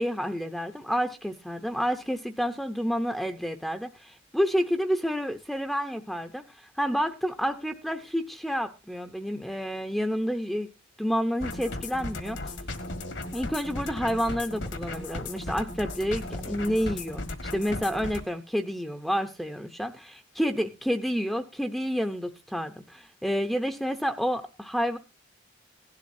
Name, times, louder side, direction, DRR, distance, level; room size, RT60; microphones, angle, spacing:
voice 1, 0.0-10.7 11.0-12.4 13.3-17.2 17.5-25.0, equal, ahead, 7 dB, 0.7 m, -29 dB
sound 1, 11.4-18.2, left 2 dB, 65° left, 1.6 m, -36 dB
17.5 x 11.5 x 2.7 m, 0.27 s
head